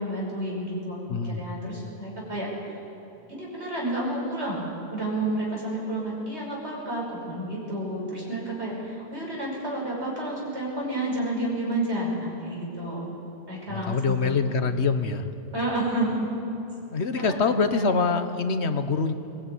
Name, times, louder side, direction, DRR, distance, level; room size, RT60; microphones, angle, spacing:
voice 1, 0.0-2.5 3.3-4.6 4.9-13.2 13.5-14.3 15.5-16.3 17.2-17.4, right 1 dB, 75° right, -4 dB, 6.0 m, -30 dB
voice 2, 1.1-1.4 13.7-15.3 16.9-19.1, left 4 dB, 80° left, 9 dB, 1.5 m, -25 dB
20.5 x 19.5 x 9.4 m, 2.8 s
omnidirectional pair, 1.1 m